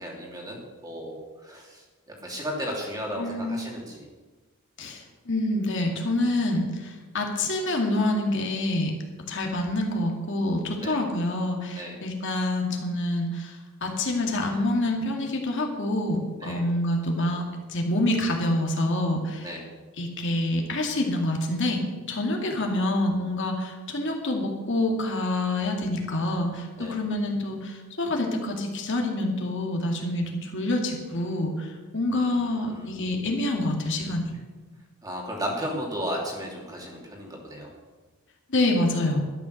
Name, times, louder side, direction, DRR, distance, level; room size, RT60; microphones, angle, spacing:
voice 1, 0.0-4.1 10.8-11.0 11.7-12.0 16.4-16.6 19.4-19.7 26.8-27.0 32.1-32.9 35.0-37.7, equal, 15° right, -1 dB, 2.8 m, -35 dB
voice 2, 3.2-3.6 4.8-8.9 9.3-19.5 20.0-21.8 22.1-34.3 38.5-39.2, left 1 dB, 55° left, 1 dB, 2.2 m, -27 dB
12.0 x 11.0 x 6.5 m, 1.3 s
head